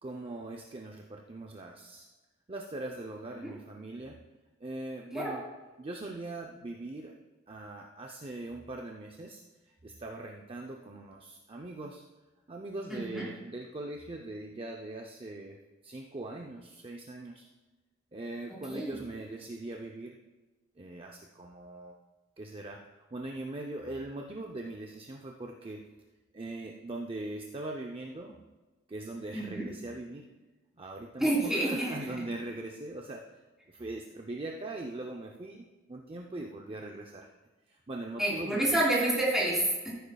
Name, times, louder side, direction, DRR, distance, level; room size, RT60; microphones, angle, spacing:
voice 1, 0.0-2.1 2.5-4.2 4.6-5.5 5.8-7.1 7.5-9.4 9.8-12.0 12.5-15.6 15.8-17.4 18.1-20.2 20.8-21.9 22.4-25.8 26.3-28.4 28.9-30.3 30.8-33.3 33.7-37.3 37.7-38.8, right 2 dB, 25° right, 1 dB, 0.6 m, -41 dB
voice 2, 12.9-13.2 18.7-19.0 29.3-29.7 31.2-31.9 38.2-39.9, right 1 dB, 5° right, -6 dB, 3.5 m, -28 dB
15.0 x 9.2 x 2.3 m, 1.2 s
head